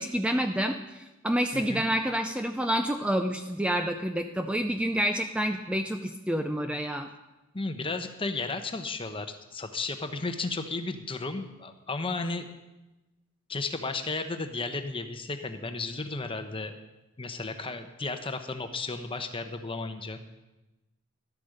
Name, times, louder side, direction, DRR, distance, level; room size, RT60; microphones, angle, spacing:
voice 1, 0.0-7.1, equal, 5° right, 6 dB, 0.4 m, -28 dB
voice 2, 1.5-1.8 7.5-12.5 13.5-16.8 17.2-20.2, left 3 dB, 25° left, 7 dB, 0.9 m, -34 dB
12.0 x 8.5 x 6.5 m, 1.0 s
head